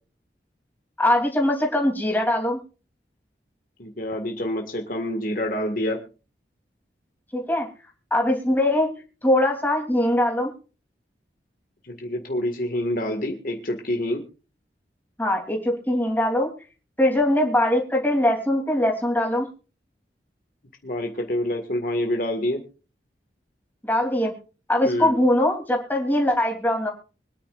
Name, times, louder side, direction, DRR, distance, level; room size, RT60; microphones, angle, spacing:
voice 1, 1.0-2.6 7.3-7.7 8.1-8.9 9.2-10.5 15.2-16.5 17.0-19.5 23.8-24.3 24.7-26.9, left 1 dB, 10° left, 1 dB, 3.2 m, -21 dB
voice 2, 3.8-6.0 11.9-14.2 20.8-22.6 24.8-25.1, left 1 dB, 50° left, 3 dB, 1.9 m, -27 dB
25.0 x 10.0 x 2.5 m, 0.35 s
head